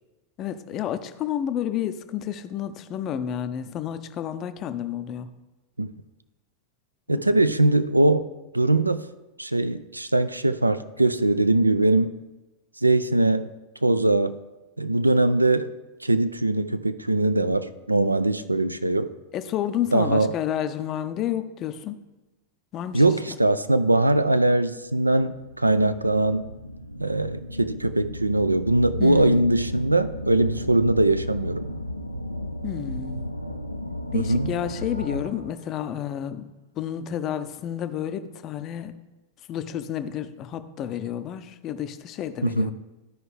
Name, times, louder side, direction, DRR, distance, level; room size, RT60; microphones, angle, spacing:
voice 1, 0.4-5.3 7.1-7.6 19.3-21.9 22.7-23.0 29.0-29.4 32.6-33.3 34.1-36.5 36.8-38.9 39.5-42.7, left 10 dB, 35° left, 11 dB, 0.5 m, -30 dB
voice 2, 7.1-8.3 8.5-9.0 9.4-12.1 12.8-13.5 13.8-14.4 14.8-15.7 16.0-19.1 19.9-20.3 22.9-26.4 27.0-31.7 34.1-34.5 42.4-42.7, right 2 dB, 85° right, 12 dB, 0.3 m, -21 dB
sound 1, 24.9-35.5, left 1 dB, 85° left, 0.4 m, -34 dB
13.0 x 4.7 x 3.2 m, 1.1 s
figure-of-eight pair, 90°, 0 cm